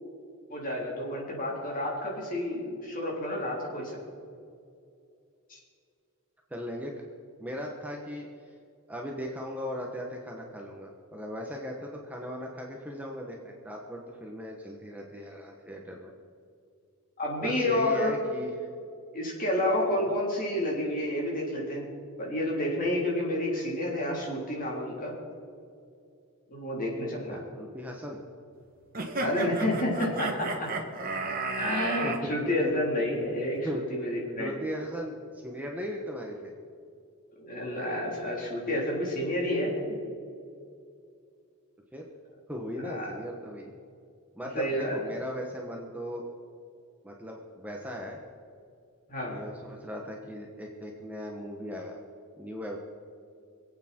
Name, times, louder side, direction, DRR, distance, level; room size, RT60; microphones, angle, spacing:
voice 1, 0.5-4.0 5.5-5.6 17.2-18.1 19.1-21.9 22.2-25.1 26.5-27.4 29.2-30.7 31.5-34.6 37.4-40.0 42.8-43.1 44.6-45.0 49.1-49.3, left 1 dB, 40° left, -3 dB, 3.7 m, -30 dB
voice 2, 6.5-6.9 7.4-8.5 8.9-16.1 17.4-18.7 19.9-20.1 27.3-28.2 32.0-32.3 33.6-33.8 34.4-36.5 41.9-42.0 42.5-43.7 44.4-46.2 47.0-48.2 49.2-52.0 52.4-52.8, equal, 5° right, 0 dB, 1.2 m, -38 dB
sound 1, 28.9-32.2, right 3 dB, 40° right, 1.5 m, -33 dB
25.5 x 8.7 x 4.5 m, 2.4 s
head